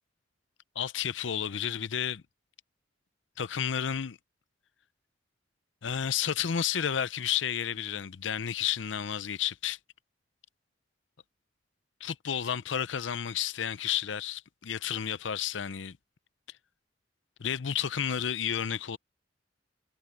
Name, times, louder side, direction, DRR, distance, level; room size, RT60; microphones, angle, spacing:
voice 1, 0.8-2.2 3.4-4.2 5.8-9.8 12.0-16.0 17.4-19.0, left 8 dB, 80° left, 0.6 m, -31 dB
head